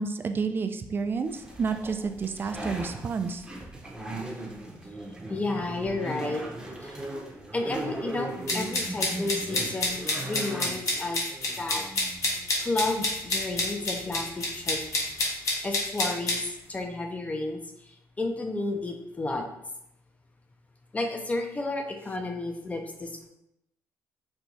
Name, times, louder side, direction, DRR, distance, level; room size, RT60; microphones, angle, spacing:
voice 1, 0.0-3.5, right 5 dB, 35° right, 8 dB, 0.3 m, -30 dB
sound 1, 1.3-15.2, right 1 dB, 10° right, 0.7 m, -39 dB
voice 2, 5.3-6.4 6.8-7.0 7.5-11.2 11.6-11.9 12.6-14.8 15.6-16.4 16.7-17.6 18.2-19.5 20.9-23.3, left 2 dB, 20° left, 4 dB, 0.5 m, -32 dB
sound 2, 8.5-16.4, left 2 dB, 55° left, 0.9 m, -28 dB
4.3 x 2.3 x 2.6 m, 0.81 s
cardioid pair, 100°, 6 cm